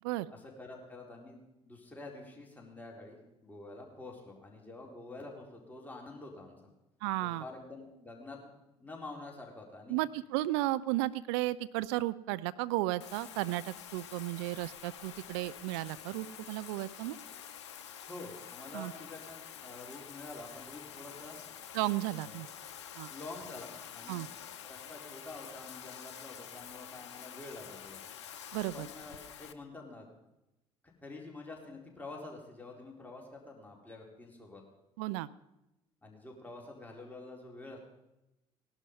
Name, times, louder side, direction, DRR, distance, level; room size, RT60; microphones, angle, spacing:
voice 1, 0.3-6.6 7.2-8.4 8.8-10.0 18.1-21.5 22.1-22.4 23.1-24.2 24.7-28.0 28.7-30.1 30.8-34.6 36.0-37.8, left 2 dB, 10° left, -1 dB, 4.2 m, -48 dB
voice 2, 7.0-7.4 9.9-17.2 18.7-18.9 21.7-22.5 22.9-23.1 24.1-24.3 28.5-28.9 35.0-35.3, right 17 dB, 65° right, 15 dB, 0.5 m, -34 dB
Bathtub (filling or washing), 13.0-29.5, left 9 dB, 75° left, 0.7 m, -48 dB
18.0 x 11.5 x 5.5 m, 0.92 s
figure-of-eight pair, 55°, 15 cm